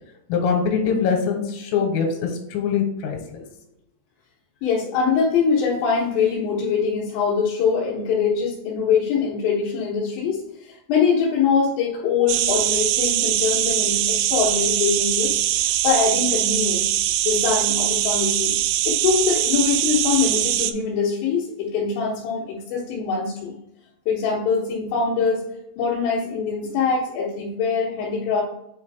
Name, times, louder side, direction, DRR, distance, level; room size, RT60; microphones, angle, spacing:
voice 1, 0.3-3.4, left 6 dB, 90° left, 1 dB, 3.6 m, -23 dB
voice 2, 4.6-15.4 15.8-16.9 17.2-18.6 18.9-23.5 24.1-25.4 25.8-28.4, left 5 dB, 75° left, -6 dB, 3.2 m, -23 dB
sound 1, 12.3-20.7, right 13 dB, 85° right, 3.0 m, -22 dB
8.5 x 3.9 x 3.4 m, 0.82 s
omnidirectional pair, 5.6 m